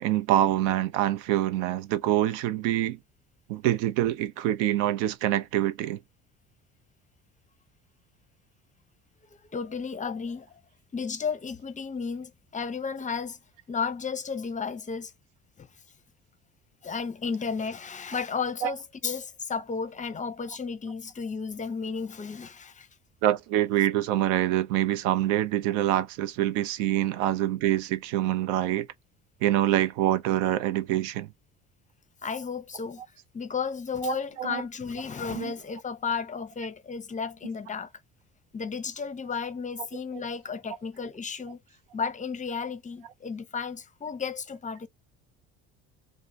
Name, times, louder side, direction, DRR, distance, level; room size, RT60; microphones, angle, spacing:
voice 1, 0.0-3.0 3.5-6.0 18.6-18.7 23.2-28.9 29.4-31.3 34.0-34.6 35.3-35.5, right 13 dB, 75° right, 0.6 m, -25 dB
voice 2, 9.5-10.5 10.9-13.4 13.7-15.1 15.6-15.7 16.8-22.9 32.2-33.0 33.3-37.9 38.5-41.6 41.9-44.9, left 5 dB, 20° left, 0.5 m, -33 dB
3.0 x 2.1 x 3.5 m
hypercardioid pair, 60°, 37 cm